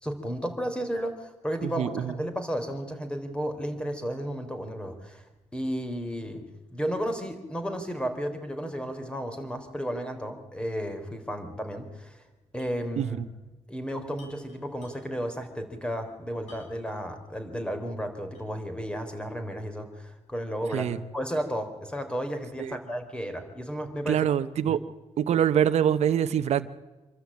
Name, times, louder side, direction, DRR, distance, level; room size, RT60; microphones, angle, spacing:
voice 1, 0.0-5.2 5.5-6.4 6.7-12.2 12.5-13.2 13.7-24.2 24.7-24.8, equal, 10° left, 7 dB, 3.8 m, -33 dB
voice 2, 1.6-2.2 13.0-13.2 20.7-21.0 22.6-22.8 24.1-24.8 25.2-26.7, right 9 dB, 70° right, 10 dB, 1.0 m, -25 dB
sound 1, 12.6-12.8 13.1-13.2 14.1-15.3 16.5-17.0 17.5-17.6 18.3-18.7, left 3 dB, 75° left, 7.2 m, -55 dB
26.5 x 13.0 x 8.7 m, 1.2 s
cardioid pair, 85°, 12 cm